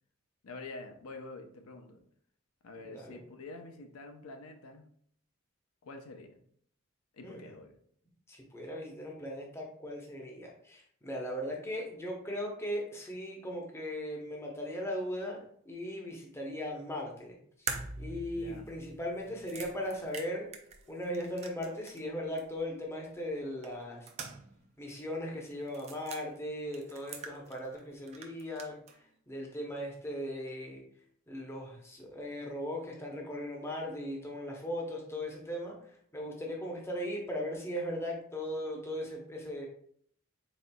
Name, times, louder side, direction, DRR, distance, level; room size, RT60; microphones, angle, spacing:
voice 1, 0.4-2.0 2.6-4.9 5.8-6.4 7.1-7.8 18.3-18.7, left 3 dB, 80° left, 5 dB, 0.6 m, -47 dB
voice 2, 8.3-17.7 18.0-20.5 20.9-24.1 24.8-28.8 29.3-30.8 31.3-35.8 36.1-39.7, equal, 10° left, -1 dB, 0.6 m, -38 dB
sound 1, 17.7-22.1 22.4-22.5 23.6-24.6 24.9-25.0 25.7-26.2 26.7-27.8 28.1-29.0, right 4 dB, 30° right, 0.4 m, -43 dB
4.2 x 3.8 x 2.2 m, 0.63 s
head